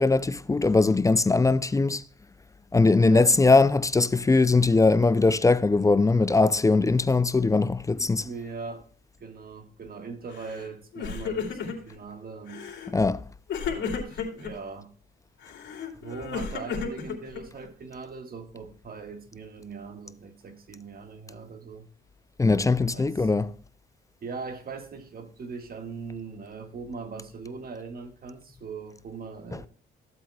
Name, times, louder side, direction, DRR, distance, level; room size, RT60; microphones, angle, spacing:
voice 1, 0.0-2.0 2.7-8.3 12.9-13.2 22.4-23.5, left 3 dB, 15° left, 0.4 m, -21 dB
voice 2, 3.0-3.3 7.9-8.9 9.2-12.6 13.6-14.9 16.0-21.9 22.9-23.3 24.2-29.7, right 4 dB, 50° right, 1.7 m, -40 dB
Crying sobbing, 10.3-10.7 10.9-12.0 12.5-12.9 13.5-14.5 15.4-17.7, left 6 dB, 70° left, 2.6 m, -33 dB
14.0 x 7.9 x 2.3 m
cardioid pair, 90°, 20 cm